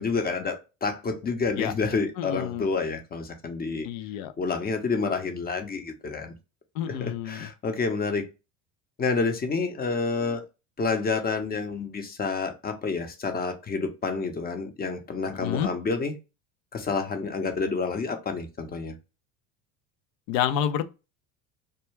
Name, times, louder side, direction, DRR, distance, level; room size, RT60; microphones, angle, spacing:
voice 1, 0.0-3.9 4.4-6.3 6.9-8.3 9.0-10.4 10.8-16.1 16.7-18.9, left 4 dB, 20° left, 0.6 m, -29 dB
voice 2, 2.2-2.7 3.8-4.3 6.8-7.5 15.3-15.7 20.3-20.9, left 9 dB, 65° left, 0.5 m, -29 dB
2.2 x 2.2 x 3.1 m
hypercardioid pair, 75°, 42 cm